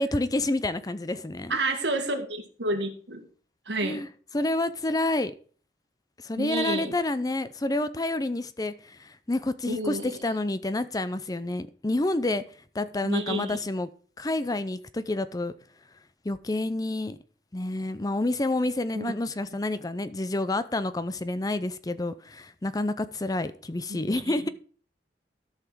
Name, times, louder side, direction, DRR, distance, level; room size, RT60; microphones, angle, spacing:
voice 1, 0.0-1.6 3.8-4.1 4.3-5.3 6.2-12.4 12.7-13.9 14.2-15.5 16.2-17.2 17.5-24.5, left 2 dB, 20° left, 0.5 m, -29 dB
voice 2, 1.5-3.2 3.7-4.0 6.4-6.9 9.7-10.2 13.0-13.6 18.9-19.1 23.9-24.3, right 2 dB, 90° right, 1.9 m, -30 dB
13.5 x 5.7 x 4.6 m
head